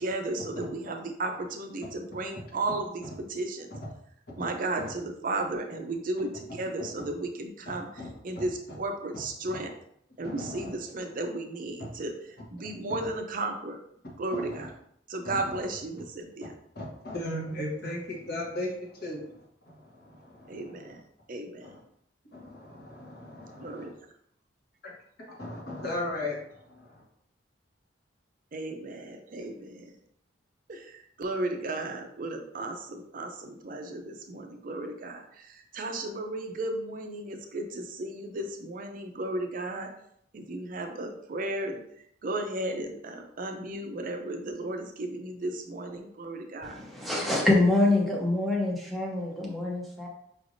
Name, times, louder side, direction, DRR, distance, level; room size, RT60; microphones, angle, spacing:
voice 1, 0.0-3.7 4.4-9.7 10.2-13.8 14.2-14.7 15.1-16.5 20.5-21.8 23.6-23.9 28.5-30.0 30.7-39.9 40.3-46.8, right 2 dB, 45° right, 4 dB, 0.5 m, -34 dB
voice 2, 10.2-10.7 12.9-13.0 14.3-14.7 15.2-15.6 16.7-20.9 21.6-21.8 22.3-23.8 25.3-27.0, left 1 dB, 60° left, -5 dB, 1.4 m, -37 dB
voice 3, 46.6-50.1, left 2 dB, ahead, -3 dB, 0.8 m, -25 dB
4.9 x 3.2 x 2.6 m, 0.70 s
head